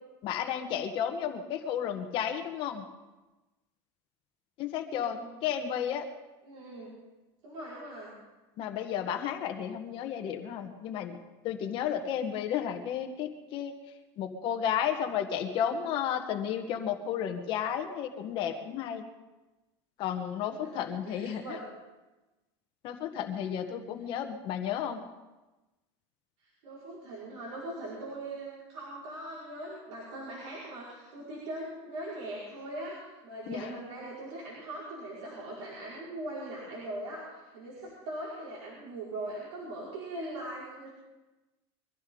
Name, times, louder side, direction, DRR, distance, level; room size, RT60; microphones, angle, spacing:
voice 1, 0.2-2.9 4.6-6.1 8.6-11.2 11.4-13.7 14.2-19.0 20.0-21.6 22.8-25.0 33.5-33.8, left 9 dB, 35° left, 4 dB, 1.4 m, -33 dB
voice 2, 4.8-5.4 6.4-6.9 7.4-8.2 20.5-20.7 21.1-21.7 26.4-40.9, right 1 dB, 80° right, -7 dB, 5.3 m, -41 dB
23.5 x 14.5 x 3.9 m, 1.1 s
cardioid pair, 175°, 14 cm